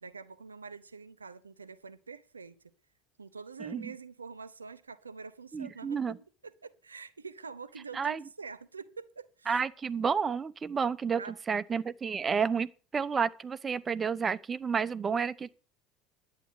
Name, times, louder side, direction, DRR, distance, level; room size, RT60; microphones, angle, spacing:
voice 1, 0.0-2.7 3.2-9.6 11.2-11.4, right 5 dB, 85° right, 0.7 m, -46 dB
voice 2, 5.5-6.1 7.9-8.2 9.5-11.2 11.5-15.5, right 6 dB, 30° right, 0.9 m, -30 dB
11.0 x 9.1 x 6.6 m
figure-of-eight pair, 70°, 0 cm